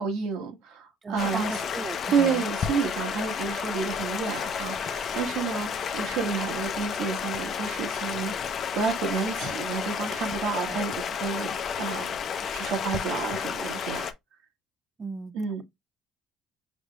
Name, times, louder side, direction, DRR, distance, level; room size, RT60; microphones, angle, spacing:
voice 1, 0.0-1.5 2.1-8.3 8.7-14.1 15.3-15.6, right 5 dB, 75° right, 1.5 m, -30 dB
voice 2, 1.0-2.4 10.4-10.8 15.0-15.3, right 4 dB, 25° right, 0.5 m, -36 dB
Stream, 1.2-14.1, left 7 dB, 50° left, 0.6 m, -31 dB
5.2 x 3.2 x 2.3 m
supercardioid pair, 90°, 0 cm